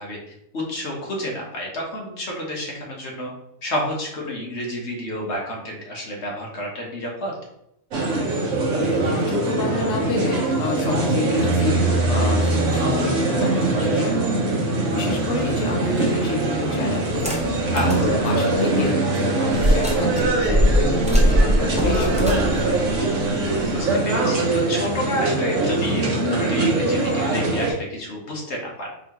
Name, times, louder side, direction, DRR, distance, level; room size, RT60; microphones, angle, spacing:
voice 1, 0.0-3.3 3.6-7.4 17.7-17.9 23.1-28.9, left 1 dB, 55° left, -2 dB, 1.4 m, -30 dB
sound 1, 7.9-27.7, right 2 dB, 70° right, 1.2 m, -22 dB
voice 2, 8.8-14.3 14.9-17.3 17.8-22.8, left 3 dB, 70° left, -1 dB, 1.2 m, -28 dB
sound 2, 17.1-18.1 18.5-18.6 19.5-23.8, equal, 5° right, 0.5 m, -21 dB
4.7 x 2.9 x 2.9 m, 0.78 s
omnidirectional pair, 1.4 m